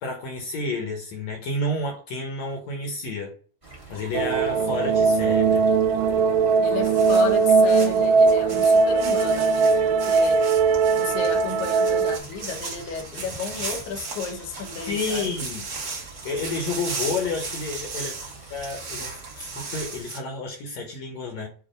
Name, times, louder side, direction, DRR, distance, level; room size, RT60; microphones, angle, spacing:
voice 1, 0.0-3.3 3.9-5.6 14.9-15.6 16.2-18.1 18.5-21.5, left 2 dB, 65° left, 1.7 m, -30 dB
sound 1, 3.6-20.0, right 3 dB, 20° right, 0.8 m, -45 dB
sound 2, 4.1-12.2, right 4 dB, 85° right, 2.0 m, -20 dB
voice 2, 6.6-10.5 10.9-15.3, left 5 dB, 90° left, 3.2 m, -33 dB
sound 3, 6.8-20.2, right 4 dB, 65° right, 0.9 m, -36 dB
7.2 x 2.7 x 5.0 m
omnidirectional pair, 4.4 m